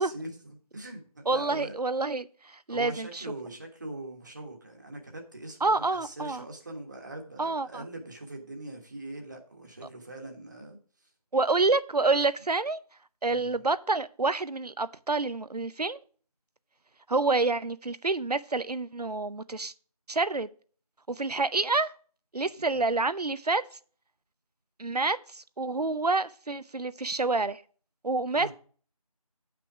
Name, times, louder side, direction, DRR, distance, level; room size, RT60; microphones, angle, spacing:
voice 1, 0.0-1.8 2.7-10.8 13.3-13.6 22.7-22.9 28.3-28.5, right 2 dB, 30° right, 1.5 m, -42 dB
voice 2, 1.3-3.2 5.6-6.4 7.4-7.8 11.3-12.8 13.2-16.0 17.1-19.7 20.1-20.5 21.1-21.9 22.3-23.6 24.8-27.6 28.0-28.5, right 3 dB, 85° right, 0.8 m, -28 dB
9.1 x 6.0 x 4.8 m
figure-of-eight pair, 170°, 20 cm